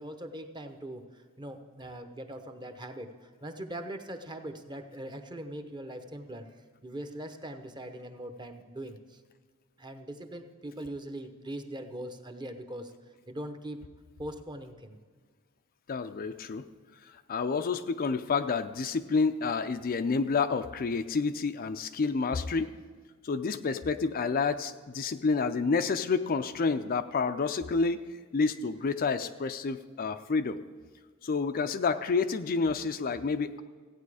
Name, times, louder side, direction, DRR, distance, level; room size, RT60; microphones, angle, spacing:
voice 1, 0.0-6.5 6.8-9.2 9.8-12.9 13.3-13.8 14.2-15.0, right 1 dB, 20° right, 7 dB, 0.8 m, -41 dB
voice 2, 15.9-16.6 17.0-22.8 23.2-28.0 28.3-30.6 31.2-33.6, left 4 dB, 40° left, 9 dB, 0.4 m, -29 dB
15.0 x 9.0 x 4.8 m, 1.5 s
head